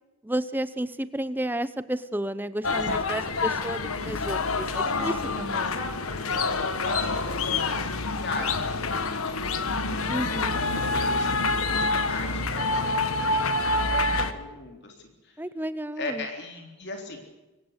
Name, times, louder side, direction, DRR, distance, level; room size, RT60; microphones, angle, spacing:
voice 1, 0.2-5.8 10.1-10.6 15.4-16.3, right 1 dB, 10° right, 14 dB, 0.8 m, -32 dB
sound 1, 2.6-14.3, left 3 dB, 75° left, 1.6 m, -27 dB
voice 2, 2.7-3.4 4.8-5.3 5.6-9.5 10.3-10.4 10.7-14.9 16.0-17.2, left 2 dB, 50° left, 3 dB, 3.4 m, -38 dB
24.0 x 17.5 x 8.0 m, 1.1 s
head